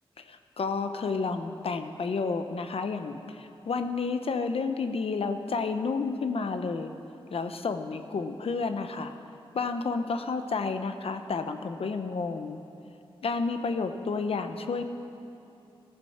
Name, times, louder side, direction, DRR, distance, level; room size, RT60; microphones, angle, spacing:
voice 1, 0.2-6.9 7.3-9.1 9.5-12.6 13.2-14.8, left 4 dB, 75° left, 8 dB, 0.7 m, -31 dB
15.0 x 14.0 x 4.3 m, 2.7 s
wide cardioid pair, 110°, 10 cm